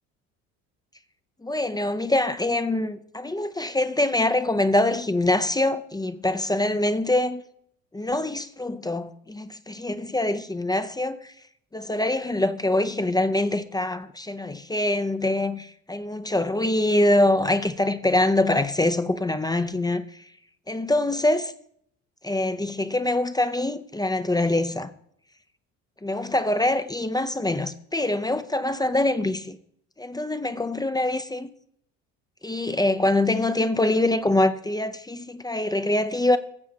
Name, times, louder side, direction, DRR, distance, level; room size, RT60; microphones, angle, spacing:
voice 1, 1.4-7.4 7.9-11.3 11.7-20.0 20.7-21.5 22.2-24.9 26.0-29.6 30.0-31.5 32.4-36.4, left 1 dB, 10° left, 0.6 m, -24 dB
16.0 x 7.2 x 2.9 m
hypercardioid pair, 65°, 39 cm